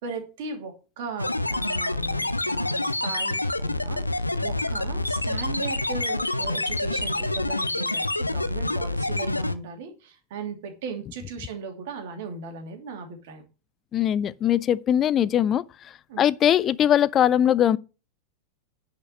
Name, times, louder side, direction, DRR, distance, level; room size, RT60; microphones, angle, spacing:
voice 1, 0.0-13.4 16.1-16.3, right 5 dB, 50° right, 2.8 m, -37 dB
sound 1, 1.2-9.5, left 2 dB, 85° left, 0.7 m, -27 dB
voice 2, 13.9-15.6 16.2-17.8, left 10 dB, 30° left, 0.5 m, -21 dB
10.5 x 5.2 x 6.5 m
figure-of-eight pair, 90°, 0 cm